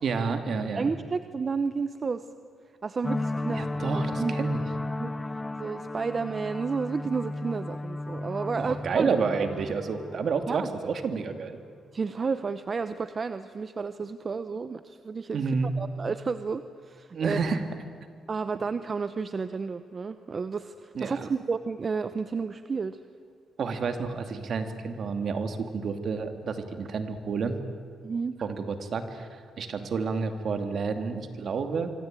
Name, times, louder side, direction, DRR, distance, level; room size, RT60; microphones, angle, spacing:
voice 1, 0.0-0.9 3.5-4.6 8.6-11.6 15.3-15.7 17.1-17.6 20.9-21.2 23.6-27.6 28.4-31.9, right 5 dB, 55° right, 7 dB, 2.5 m, -30 dB
voice 2, 0.7-2.2 2.8-3.8 4.2-4.4 5.0-5.1 5.6-9.2 10.5-10.7 11.9-17.4 18.3-23.0 28.0-28.3, right 5 dB, 35° right, 11 dB, 0.9 m, -31 dB
hiss and boo, 3.0-11.4, left 2 dB, 15° left, 0.8 m, -34 dB
25.0 x 25.0 x 9.1 m, 2.1 s
cardioid pair, 100°, 0 cm